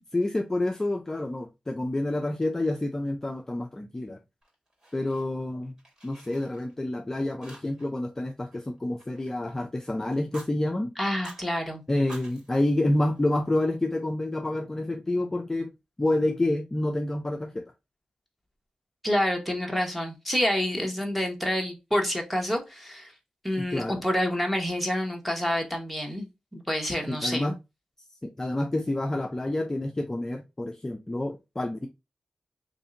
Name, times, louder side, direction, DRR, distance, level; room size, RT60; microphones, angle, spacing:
voice 1, 0.1-4.2 4.9-5.7 6.0-10.9 11.9-15.7 16.0-17.6 23.6-24.0 27.1-27.5 28.2-31.9, left 1 dB, 20° left, 0.5 m, -28 dB
Fire, 4.4-5.5 5.8-7.0 7.4-8.0 8.2-9.6 10.1-10.5 11.0-11.4 11.9-13.5, right 1 dB, 35° right, 2.1 m, -49 dB
voice 2, 11.0-11.8 19.0-23.1 23.4-26.3 26.5-27.5, equal, ahead, 1.1 m, -28 dB
3.2 x 2.7 x 3.7 m
wide cardioid pair, 90°, 2 cm